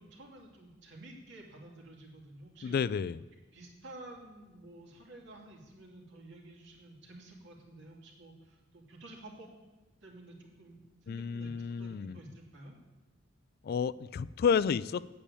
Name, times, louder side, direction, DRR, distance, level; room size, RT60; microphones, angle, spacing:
voice 1, 0.0-2.9 3.5-9.5 10.0-12.8, right 2 dB, 65° right, 0 dB, 2.6 m, -51 dB
voice 2, 2.6-3.2 11.1-12.2 13.6-15.1, left 6 dB, 50° left, 18 dB, 0.3 m, -31 dB
8.6 x 8.5 x 8.4 m, 1.1 s
head